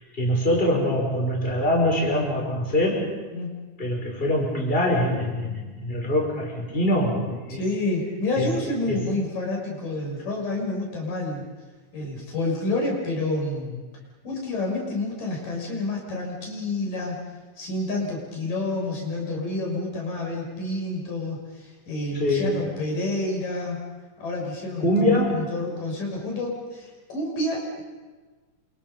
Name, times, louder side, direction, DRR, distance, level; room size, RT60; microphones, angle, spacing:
voice 1, 0.0-3.1 3.8-7.6 8.4-8.5 8.9-9.0 22.1-22.5 24.8-25.5, left 1 dB, 15° left, -1 dB, 5.7 m, -23 dB
voice 2, 7.6-11.5 11.9-13.8 14.2-17.2 17.6-23.8 24.2-27.8, left 2 dB, 90° left, -1 dB, 7.9 m, -29 dB
29.0 x 27.0 x 5.6 m, 1.3 s
omnidirectional pair, 3.7 m